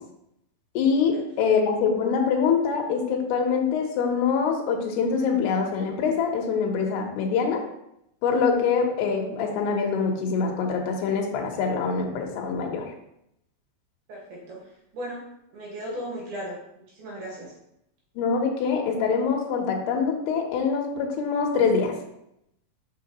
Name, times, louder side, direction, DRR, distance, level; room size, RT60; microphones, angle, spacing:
voice 1, 0.7-7.6 8.2-12.9 18.2-22.0, left 5 dB, 75° left, 1 dB, 2.7 m, -24 dB
voice 2, 14.1-14.6 14.9-16.6 17.0-17.5, equal, 65° right, -4 dB, 3.1 m, -36 dB
5.8 x 5.6 x 2.9 m, 0.80 s
omnidirectional pair, 5.0 m